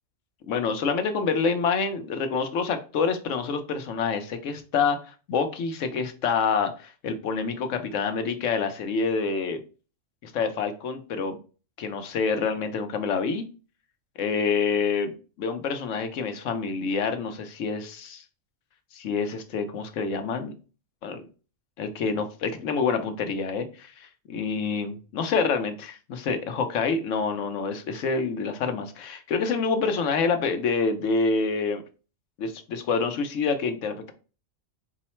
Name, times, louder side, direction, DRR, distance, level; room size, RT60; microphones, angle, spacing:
voice 1, 0.5-9.6 10.2-11.4 11.8-13.4 14.2-15.1 15.4-18.2 18.9-20.5 21.0-21.2 21.8-31.8 32.4-34.1, left 5 dB, 75° left, 7 dB, 1.1 m, -27 dB
4.6 x 2.1 x 4.2 m, 0.34 s
omnidirectional pair, 1.3 m